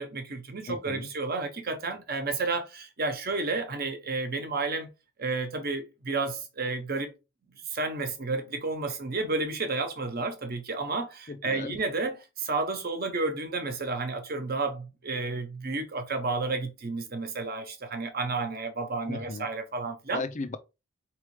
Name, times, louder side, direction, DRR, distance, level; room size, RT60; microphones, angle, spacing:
voice 1, 0.0-4.9 5.2-7.1 7.5-20.2, right 3 dB, 45° right, 1.0 m, -31 dB
voice 2, 0.7-1.1 11.3-11.8 19.1-19.5 20.1-20.6, left 3 dB, 35° left, 0.5 m, -36 dB
4.4 x 3.2 x 3.2 m
head